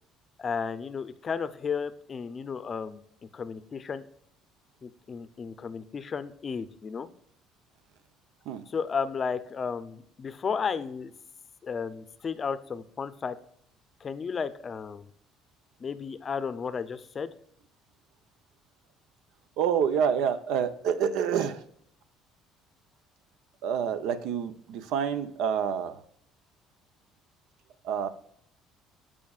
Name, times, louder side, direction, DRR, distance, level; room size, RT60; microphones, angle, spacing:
voice 1, 0.4-3.0 3.3-4.1 4.8-7.1 8.7-11.1 11.6-13.4 14.0-15.1 15.8-17.3, left 6 dB, 30° left, 13 dB, 0.6 m, -33 dB
voice 2, 19.6-21.6 23.6-26.0 27.8-28.1, right 7 dB, 80° right, 11 dB, 0.7 m, -27 dB
14.0 x 5.0 x 2.4 m, 0.67 s
cardioid pair, 125°, 0 cm